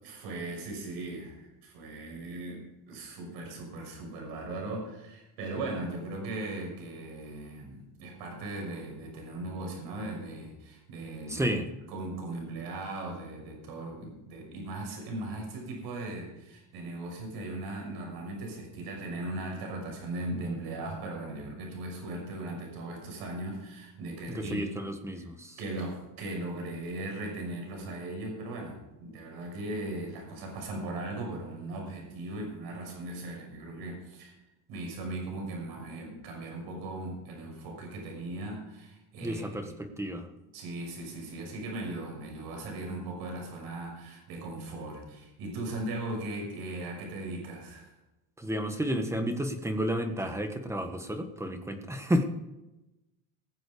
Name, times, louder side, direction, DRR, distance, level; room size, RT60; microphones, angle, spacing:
voice 1, 0.0-11.5 11.9-24.7 25.2-25.3 25.6-34.3 34.7-39.7 40.5-47.9, right 2 dB, 70° right, 1 dB, 6.1 m, -38 dB
voice 2, 11.3-11.7 24.3-25.6 39.2-40.3 48.4-52.2, equal, 5° right, 6 dB, 1.5 m, -31 dB
19.5 x 7.8 x 5.1 m, 0.97 s
cardioid pair, 140°, 39 cm